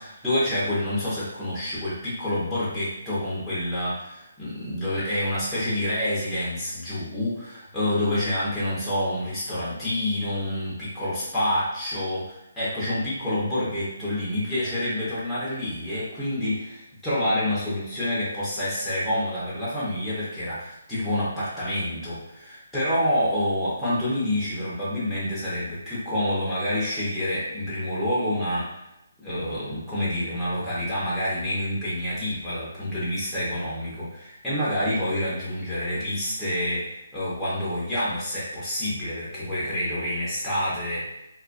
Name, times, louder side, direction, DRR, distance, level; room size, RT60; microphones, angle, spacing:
voice 1, 0.0-28.7 29.2-41.1, left 1 dB, ahead, -12 dB, 0.7 m, -28 dB
2.3 x 2.2 x 2.5 m, 0.87 s
hypercardioid pair, 170°, 0 cm